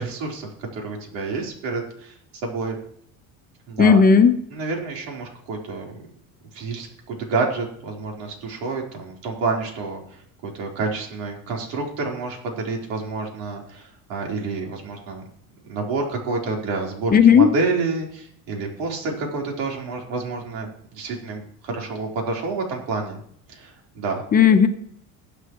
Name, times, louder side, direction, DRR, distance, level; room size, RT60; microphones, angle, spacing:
voice 1, 0.0-2.1 2.4-2.8 3.7-4.0 4.5-6.0 6.5-15.2 15.6-23.2 23.5-24.2, right 3 dB, 85° right, -1 dB, 4.2 m, -29 dB
voice 2, 3.8-4.4 17.1-17.5 24.3-24.7, left 6 dB, 25° left, 7 dB, 0.9 m, -13 dB
21.5 x 8.1 x 3.2 m, 0.64 s
cardioid pair, 140°, 34 cm